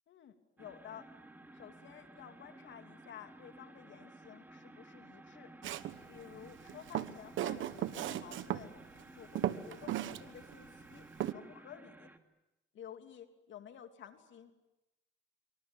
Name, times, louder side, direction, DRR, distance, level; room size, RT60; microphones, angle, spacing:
voice 1, 0.1-1.1 1.5-5.5 6.1-8.8 9.1-12.1 12.7-14.6, left 9 dB, 70° left, 6 dB, 2.9 m, -53 dB
sound 1, 0.6-12.2, right 2 dB, 10° right, 2.4 m, -55 dB
Walk footsteps, 5.6-6.0 6.7-8.6 9.0-9.1 9.3-10.2 10.5-10.6 11.2-11.3, right 12 dB, 80° right, 1.3 m, -36 dB
26.0 x 25.0 x 8.9 m, 0.96 s
cardioid pair, 90°, 20 cm